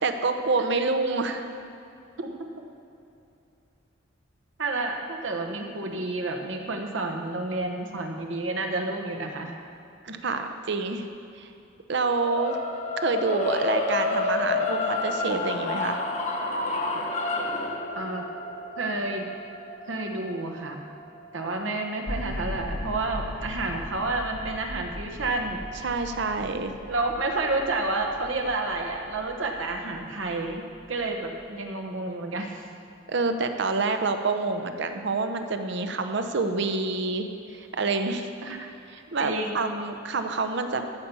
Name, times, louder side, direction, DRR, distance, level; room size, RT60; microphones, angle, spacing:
voice 1, 0.0-1.5 10.2-11.1 11.4-11.5 11.9-12.6 13.0-16.0 25.8-26.7 33.1-38.3 38.9-40.8, right 3 dB, 60° right, 7 dB, 0.8 m, -27 dB
voice 2, 2.2-2.5 4.6-9.5 10.1-10.2 17.9-18.3 18.8-19.3 19.9-20.8 21.3-25.6 26.9-30.6 30.9-32.7 38.4-38.7 39.2-39.6, right 2 dB, 80° right, 3 dB, 1.2 m, -30 dB
sound 1, 12.2-22.4, left 2 dB, 35° left, 0.9 m, -30 dB
sound 2, 22.0-31.4, left 1 dB, 85° left, 2.2 m, -39 dB
13.5 x 5.4 x 7.1 m, 2.7 s
head